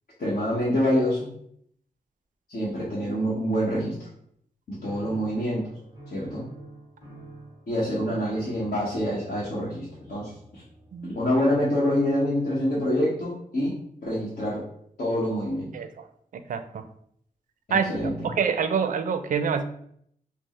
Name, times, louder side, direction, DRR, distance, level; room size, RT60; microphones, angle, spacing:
voice 1, 0.2-1.3 2.5-4.1 4.7-5.7 6.1-6.4 7.7-10.6 11.1-13.8 14.0-14.6 15.0-15.7 17.7-18.1, equal, 65° left, -8 dB, 1.1 m, -26 dB
sound 1, 4.8-11.3, right 2 dB, 35° left, 1.4 m, -48 dB
voice 2, 16.3-16.9 17.7-17.9 18.2-19.6, right 6 dB, 60° right, 9 dB, 0.4 m, -26 dB
6.0 x 2.0 x 3.1 m, 0.68 s
wide cardioid pair, 180°, 15 cm